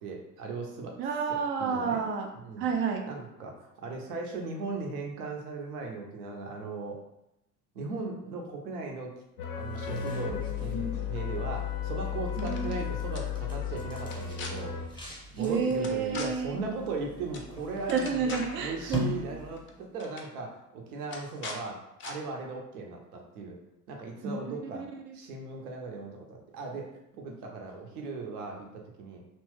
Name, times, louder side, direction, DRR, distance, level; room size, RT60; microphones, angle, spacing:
voice 1, 0.0-1.0 1.6-2.0 2.4-2.7 3.1-7.0 7.7-9.1 9.6-14.8 15.3-23.6 23.9-24.9 25.1-29.2, right 3 dB, 65° right, 1 dB, 0.8 m, -38 dB
voice 2, 1.0-2.3 2.6-3.1 12.4-12.8 15.4-16.6 17.9-19.2 24.2-25.2, right 5 dB, 30° right, 3 dB, 0.3 m, -30 dB
sound 1, 9.4-14.9, left 7 dB, 70° left, 0.6 m, -34 dB
sound 2, 9.5-19.9, left 1 dB, 10° left, 0.9 m, -43 dB
sound 3, 12.3-12.8 13.1-13.2 14.0-14.5 15.8-16.3 17.3-17.5 17.8-18.6 19.6-19.7 20.0-20.3 21.1-21.6 22.0-22.1, left 4 dB, 25° left, 0.5 m, -40 dB
2.8 x 2.1 x 3.2 m, 0.85 s
figure-of-eight pair, 65°, 47 cm